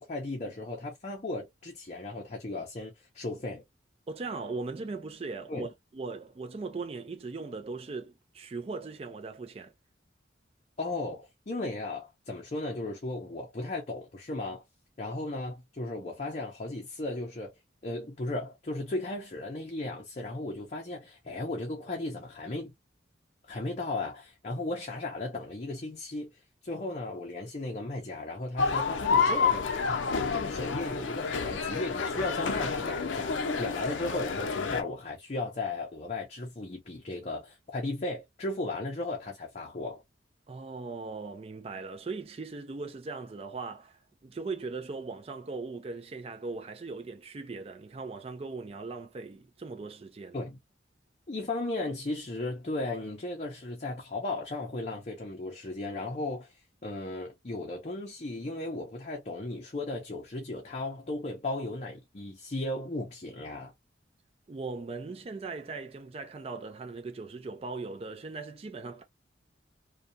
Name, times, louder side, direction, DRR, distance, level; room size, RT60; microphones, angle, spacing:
voice 1, 0.0-3.6 5.5-5.7 10.8-14.6 15.0-17.5 17.8-22.7 23.5-40.0 50.3-50.6 51.3-56.5 56.8-63.7, left 2 dB, 35° left, 0.6 m, -36 dB
voice 2, 4.1-9.7 40.5-50.4 64.5-69.0, right 3 dB, 30° right, 0.4 m, -39 dB
sound 1, 28.6-34.8, left 5 dB, 90° left, 0.6 m, -29 dB
2.7 x 2.3 x 2.5 m
head